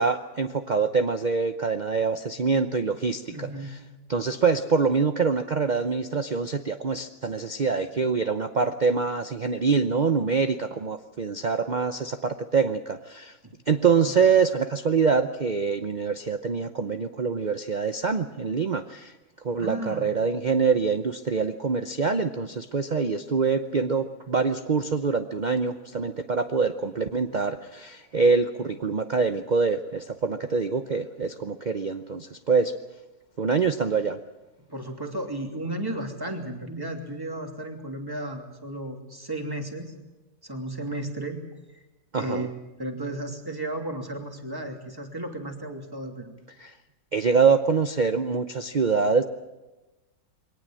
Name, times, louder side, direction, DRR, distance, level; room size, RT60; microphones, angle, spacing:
voice 1, 0.0-3.8 4.1-13.4 13.7-19.2 19.4-32.7 33.4-34.2 42.1-42.5 46.6-46.8 47.1-49.2, right 5 dB, 55° right, 8 dB, 0.5 m, -25 dB
voice 2, 3.3-3.7 13.4-13.5 19.6-20.1 34.7-39.9 40.4-41.4 42.2-42.5 42.8-46.3, right 1 dB, 10° right, 3 dB, 2.8 m, -34 dB
22.5 x 18.5 x 7.6 m, 1.1 s
omnidirectional pair, 2.0 m